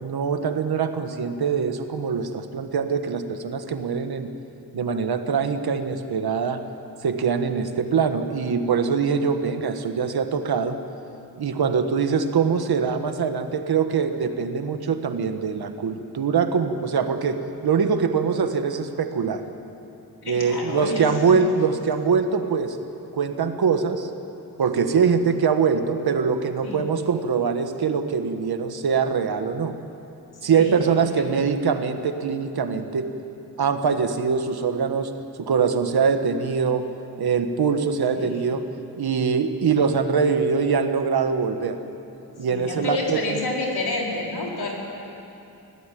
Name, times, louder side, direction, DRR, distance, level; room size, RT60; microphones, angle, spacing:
voice 1, 0.0-4.3 4.7-6.6 7.0-10.8 11.4-19.4 20.2-22.8 23.1-24.1 24.6-29.7 30.4-33.1 33.6-35.1 35.4-36.9 37.2-38.6 39.0-41.8 42.4-43.4, right 6 dB, 80° right, 7 dB, 1.6 m, -23 dB
voice 2, 20.2-21.1 26.6-26.8 30.5-30.8 31.2-31.3 38.1-38.4 42.5-44.7, left 2 dB, 85° left, -2 dB, 4.9 m, -29 dB
24.5 x 17.5 x 9.4 m, 2.8 s
wide cardioid pair, 150°, 37 cm